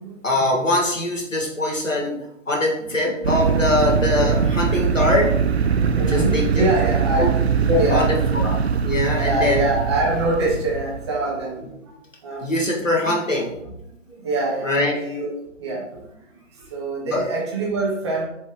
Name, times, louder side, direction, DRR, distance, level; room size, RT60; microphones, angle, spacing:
voice 1, 0.2-2.2 2.5-5.3 6.1-6.6 7.2-7.3 7.7-8.6 8.8-9.6 12.4-13.5 14.6-15.0 17.1-17.3, left 2 dB, 80° left, -2 dB, 2.0 m, -22 dB
voice 2, 2.9-3.6 5.9-7.3 7.8-8.4 9.1-11.6 12.2-12.4 13.0-13.2 14.2-15.8 16.7-18.2, right 2 dB, 20° right, -4 dB, 1.3 m, -25 dB
sound 1, 3.2-11.4, right 6 dB, 60° right, 0.5 m, -22 dB
5.8 x 4.5 x 3.7 m, 0.77 s
figure-of-eight pair, 145°, 38 cm